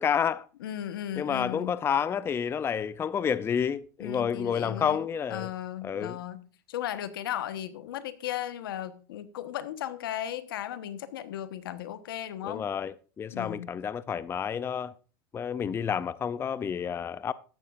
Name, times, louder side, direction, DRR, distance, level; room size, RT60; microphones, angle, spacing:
voice 1, 0.0-0.4 1.2-5.5 5.8-6.2 12.5-14.9 15.3-17.3, left 7 dB, 20° left, 0.4 m, -29 dB
voice 2, 0.6-1.8 4.0-5.0 5.3-6.4 6.7-12.7 13.3-13.7, left 11 dB, 90° left, 1.2 m, -36 dB
13.5 x 11.0 x 2.5 m
supercardioid pair, 120°, 12 cm